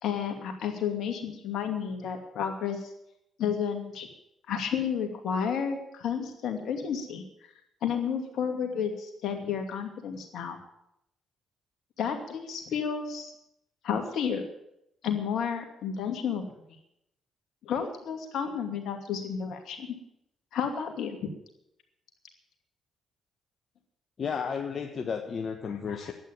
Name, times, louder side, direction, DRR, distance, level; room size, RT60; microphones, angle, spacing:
voice 1, 0.0-2.9 3.4-4.1 4.5-7.2 7.8-10.6 12.0-13.3 13.8-14.4 15.0-16.5 17.6-19.9 20.5-21.3 25.7-26.1, left 7 dB, 70° left, 5 dB, 2.5 m, -31 dB
voice 2, 24.2-26.1, left 6 dB, 50° left, 4 dB, 1.3 m, -33 dB
12.0 x 9.0 x 9.0 m, 0.80 s
supercardioid pair, 55°, 0 cm